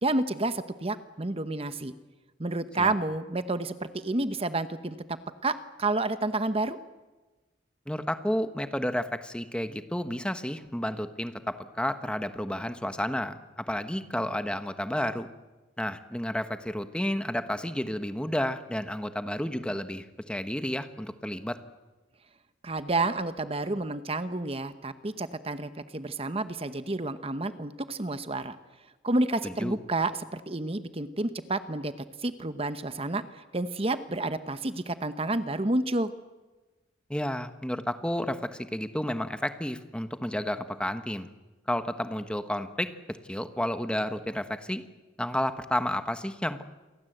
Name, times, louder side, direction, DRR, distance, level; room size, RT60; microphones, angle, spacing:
voice 1, 0.0-1.9 2.4-5.2 5.4-6.8 22.6-28.6 29.0-31.9 32.2-36.1, right 2 dB, 30° right, 11 dB, 1.0 m, -30 dB
voice 2, 7.9-15.3 15.8-21.6 29.4-29.8 37.1-41.3 41.7-44.8 45.2-46.6, left 1 dB, 5° left, 9 dB, 1.2 m, -31 dB
28.5 x 23.0 x 8.0 m, 1.2 s
head